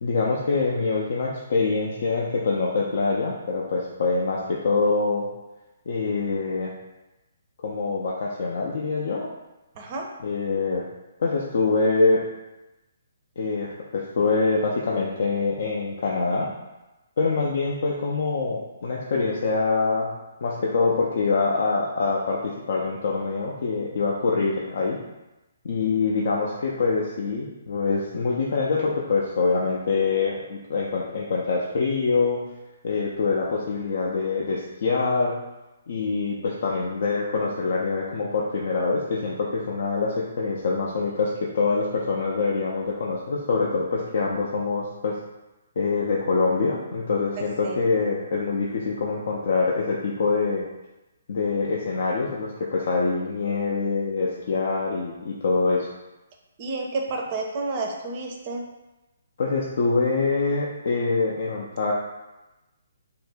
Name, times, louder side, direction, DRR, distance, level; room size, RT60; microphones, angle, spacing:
voice 1, 0.0-5.3 5.9-6.7 7.6-9.3 10.2-10.8 11.2-12.3 13.4-16.5 17.2-20.1 20.4-25.0 25.6-32.4 32.8-35.4 35.9-45.2 45.8-50.6 51.3-55.9 59.4-61.9, left 4 dB, 50° left, -4 dB, 0.4 m, -25 dB
voice 2, 9.8-10.1 47.4-47.8 56.6-58.6, right 3 dB, 30° right, 1 dB, 0.5 m, -30 dB
2.8 x 2.5 x 3.3 m, 1.0 s
figure-of-eight pair, 130°, 0 cm